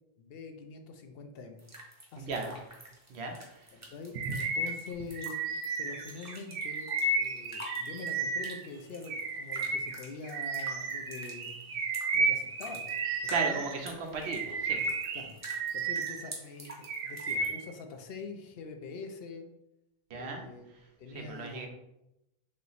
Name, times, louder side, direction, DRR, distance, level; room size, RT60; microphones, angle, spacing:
voice 1, 0.2-1.6 2.1-2.6 3.7-6.9 7.2-11.8 12.1-12.9 13.4-13.6 15.1-15.4 15.7-19.5 20.1-20.6 21.0-21.7, left 4 dB, 70° left, 5 dB, 0.8 m, -44 dB
sound 1, 1.6-17.5, right 1 dB, 20° right, 0.7 m, -50 dB
voice 2, 2.2-2.5 3.1-3.7 13.3-14.9 20.1-20.5 20.7-20.8 21.1-21.7, right 3 dB, 85° right, 3 dB, 1.0 m, -36 dB
Bird vocalization bird call bird song, 4.2-8.7 9.1-13.8 14.2-16.3 16.7-17.7, right 3 dB, 65° right, 0.7 m, -33 dB
3.2 x 2.8 x 4.0 m, 0.89 s
omnidirectional pair, 1.1 m